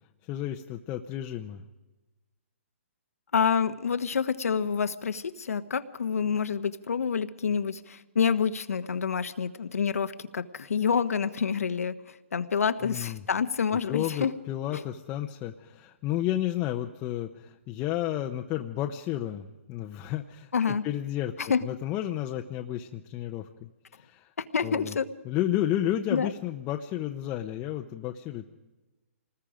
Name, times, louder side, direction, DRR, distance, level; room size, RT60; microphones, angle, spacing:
voice 1, 0.2-1.6 12.8-13.2 13.8-21.3 21.6-23.7 23.9-24.3 24.6-25.0 25.2-28.5, left 12 dB, 20° left, 3 dB, 0.8 m, -32 dB
voice 2, 3.3-14.3 14.7-14.8 20.5-20.8 21.4-21.6 24.4-25.1 26.1-26.3, left 6 dB, 90° left, 11 dB, 1.3 m, -28 dB
27.0 x 20.0 x 5.1 m, 1.1 s
hypercardioid pair, 160°, 8 cm